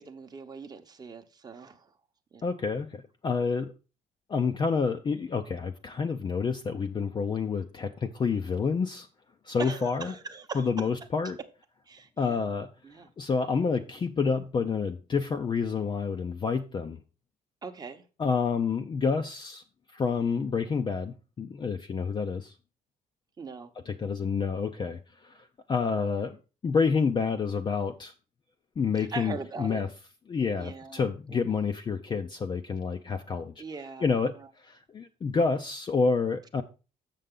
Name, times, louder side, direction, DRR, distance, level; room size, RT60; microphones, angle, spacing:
voice 1, 0.0-1.9 2.3-2.4 9.6-10.9 11.9-12.5 12.8-13.1 17.6-18.0 23.4-23.7 29.0-29.8 30.6-31.0 31.3-31.4 33.6-34.1 34.4-34.5, right 4 dB, 25° right, 0.9 m, -41 dB
voice 2, 2.4-3.7 4.3-9.1 9.4-10.1 10.5-11.4 12.2-12.7 13.2-17.0 18.2-19.6 19.9-22.5 23.9-26.4 26.6-28.1 28.8-29.9 30.3-33.6 34.0-36.6, left 5 dB, 30° left, 0.5 m, -28 dB
6.8 x 6.4 x 3.7 m
cardioid pair, 110°, 17 cm